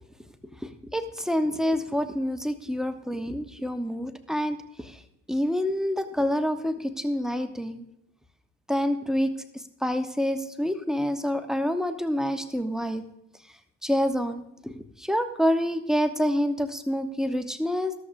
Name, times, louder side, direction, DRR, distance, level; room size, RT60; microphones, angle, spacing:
voice 1, 0.6-5.0 5.3-7.9 8.7-13.0 13.8-17.9, equal, ahead, 8 dB, 0.9 m, -27 dB
13.5 x 13.0 x 2.6 m, 0.79 s
figure-of-eight pair, 55°, 38 cm